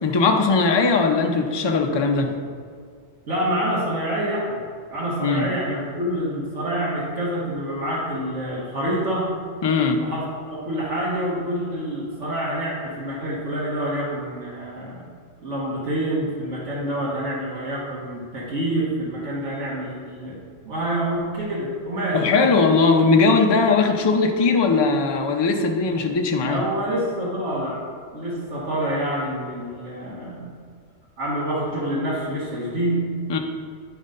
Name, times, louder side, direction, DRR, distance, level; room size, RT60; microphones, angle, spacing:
voice 1, 0.0-2.3 5.2-5.5 9.6-10.0 22.1-26.6 33.3-33.4, left 4 dB, 35° left, 3 dB, 0.4 m, -19 dB
voice 2, 3.3-4.6 4.9-9.3 10.0-15.1 15.4-20.3 20.6-22.2 26.5-27.8 28.1-30.5 31.2-33.0, right 1 dB, 80° right, -7 dB, 1.8 m, -27 dB
9.9 x 3.8 x 5.4 m, 2.2 s
omnidirectional pair, 1.2 m